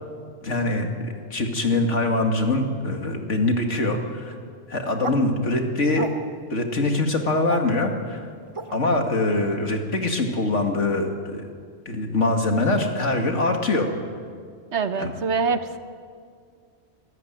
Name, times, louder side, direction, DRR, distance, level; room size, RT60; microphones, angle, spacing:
voice 1, 0.4-0.9 1.3-4.3 4.7-6.0 6.5-8.2 8.7-11.5 11.9-13.9 15.0-15.1, left 2 dB, 75° left, 3 dB, 2.6 m, -23 dB
sound 1, 5.0-5.2 5.9-6.5 7.2-7.6 8.6-8.7, right 3 dB, 30° right, 0.7 m, -33 dB
voice 2, 14.7-15.8, right 5 dB, 65° right, 10 dB, 1.3 m, -24 dB
26.0 x 14.0 x 9.2 m, 2.1 s
omnidirectional pair, 1.3 m